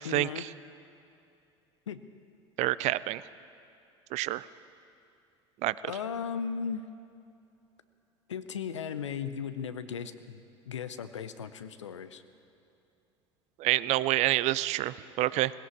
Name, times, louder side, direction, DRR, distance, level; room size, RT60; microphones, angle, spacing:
voice 1, 0.0-0.5 1.9-2.0 5.8-6.9 8.3-12.2, left 7 dB, 85° left, 12 dB, 0.7 m, -36 dB
voice 2, 2.6-3.2 4.1-4.5 5.6-5.7 13.6-15.5, right 16 dB, 50° right, 18 dB, 0.4 m, -27 dB
18.5 x 16.5 x 4.7 m, 2.7 s
figure-of-eight pair, 70°, 15 cm